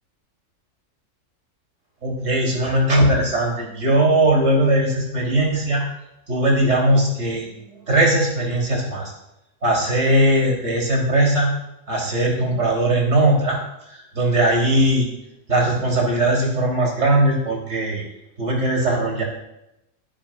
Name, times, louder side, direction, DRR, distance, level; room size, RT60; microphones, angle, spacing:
voice 1, 2.0-5.9 6.3-9.1 9.6-11.5 11.9-13.6 13.9-15.1 15.5-18.0 18.4-19.2, right 1 dB, 50° right, -2 dB, 3.8 m, -19 dB
24.0 x 10.0 x 2.5 m, 0.84 s
omnidirectional pair, 1.6 m